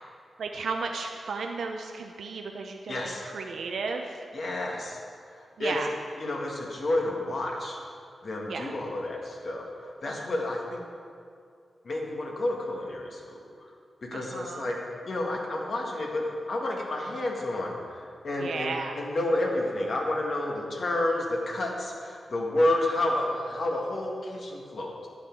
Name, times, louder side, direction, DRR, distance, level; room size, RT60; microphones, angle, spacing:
voice 1, 0.4-4.2 5.6-6.0 8.5-8.7 14.1-14.7 18.4-19.0, right 4 dB, 85° right, 3 dB, 0.6 m, -34 dB
voice 2, 2.9-3.2 4.3-5.0 5.3-5.8 6.2-7.8 8.2-10.8 11.8-13.4 14.1-14.8 15.0-25.1, left 1 dB, 60° left, -1 dB, 1.7 m, -30 dB
11.0 x 7.5 x 4.6 m, 2.4 s
cardioid pair, 85°, 0 cm